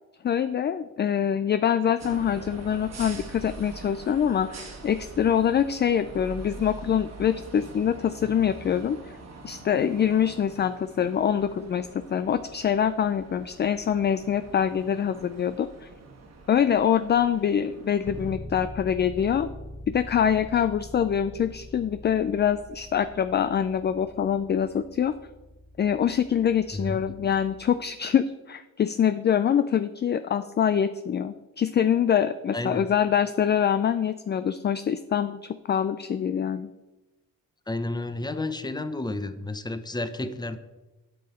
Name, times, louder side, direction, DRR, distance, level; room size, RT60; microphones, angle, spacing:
voice 1, 0.2-9.0 9.4-15.9 16.5-19.5 19.9-25.1 25.8-35.4 35.7-36.7, left 8 dB, 30° left, 12 dB, 0.4 m, -24 dB
sound 1, 2.0-18.4, right 3 dB, 50° right, 1.5 m, -44 dB
Bass guitar, 18.0-27.9, equal, 10° right, 1.0 m, -44 dB
voice 2, 32.5-32.9 37.7-40.6, left 2 dB, 10° left, 11 dB, 0.7 m, -31 dB
8.5 x 5.6 x 4.2 m, 1.1 s
supercardioid pair, 55°, 34 cm